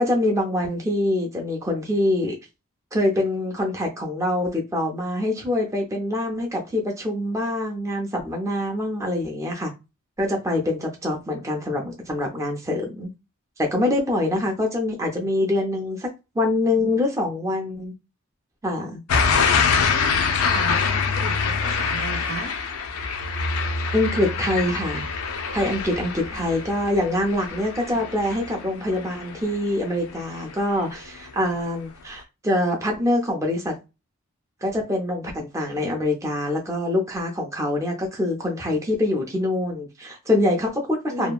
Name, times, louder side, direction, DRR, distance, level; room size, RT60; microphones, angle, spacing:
voice 1, 0.0-2.3 2.9-9.7 10.2-13.1 13.6-16.1 16.3-17.9 18.6-19.0 23.9-25.0 25.5-33.8 34.6-41.3, left 1 dB, 15° right, 0.4 m, -24 dB
sound 1, 19.1-29.9 30.3-30.8, left 5 dB, 85° left, 0.4 m, -25 dB
voice 2, 19.8-22.5 26.2-26.4 27.8-28.0 35.7-35.9 41.1-41.3, right 3 dB, 85° right, 0.7 m, -35 dB
2.7 x 2.2 x 2.3 m
head